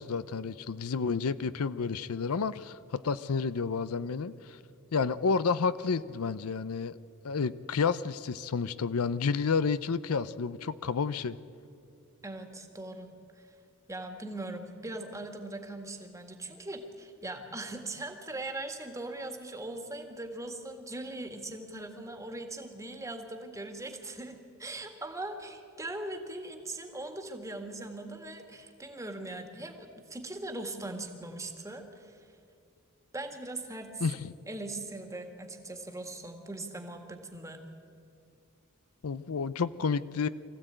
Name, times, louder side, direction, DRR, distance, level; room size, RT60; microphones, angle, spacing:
voice 1, 0.0-4.6 4.9-7.0 7.2-11.4 34.0-34.3 39.0-40.3, left 5 dB, 80° left, 15 dB, 0.6 m, -30 dB
voice 2, 12.2-13.1 13.4-13.6 13.9-32.3 33.1-34.1 34.5-37.6, right 2 dB, 15° right, 5 dB, 1.9 m, -40 dB
24.0 x 15.0 x 9.0 m, 2.5 s
head